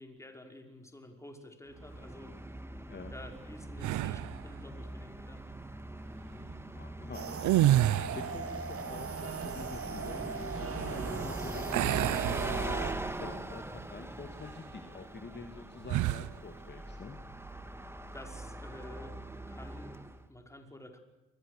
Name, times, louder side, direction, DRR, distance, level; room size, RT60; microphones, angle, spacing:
voice 1, 0.0-2.5 3.1-5.5 18.1-19.2 19.5-21.0, left 1 dB, 10° left, 4 dB, 5.4 m, -50 dB
Bus, 1.7-20.3, right 1 dB, 10° right, 2.1 m, -42 dB
sound 1, 3.8-4.4 7.3-8.4 11.7-13.1 13.6-13.8 15.8-16.3, right 14 dB, 80° right, 0.8 m, -29 dB
voice 2, 6.7-7.4 8.1-17.2, left 4 dB, 35° left, 5 dB, 2.6 m, -47 dB
sound 2, 7.1-12.9, right 6 dB, 50° right, 3.1 m, -38 dB
29.0 x 22.0 x 6.7 m, 1.0 s
cardioid pair, 90°, 30 cm